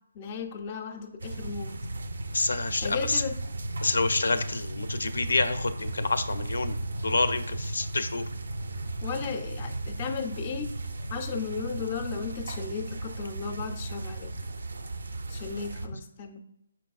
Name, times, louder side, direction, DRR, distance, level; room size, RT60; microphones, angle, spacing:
voice 1, 0.1-1.8 2.8-3.4 9.0-10.7 11.1-14.3 15.3-16.4, left 5 dB, 25° left, 6 dB, 0.4 m, -35 dB
sound 1, 1.2-15.9, right 2 dB, 75° right, 0.4 m, -35 dB
voice 2, 2.3-3.2 3.8-6.8 7.0-8.2, left 3 dB, 85° left, 11 dB, 0.4 m, -28 dB
5.6 x 4.1 x 2.3 m, 0.80 s
hypercardioid pair, 170°, 0 cm